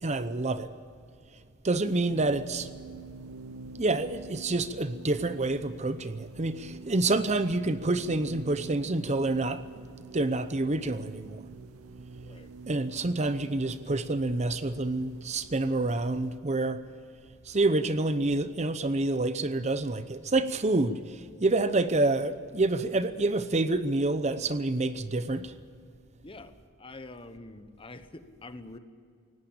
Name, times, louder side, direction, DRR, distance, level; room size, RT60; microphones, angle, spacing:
voice 1, 0.0-0.7 1.6-2.7 3.8-9.6 10.1-11.4 12.7-16.8 17.4-25.5, right 2 dB, 30° right, 12 dB, 0.8 m, -28 dB
sound 1, 2.1-16.4, right 3 dB, 85° right, 0.9 m, -47 dB
voice 2, 26.2-28.8, left 2 dB, 25° left, 10 dB, 1.1 m, -46 dB
19.5 x 17.0 x 8.7 m, 2.3 s
head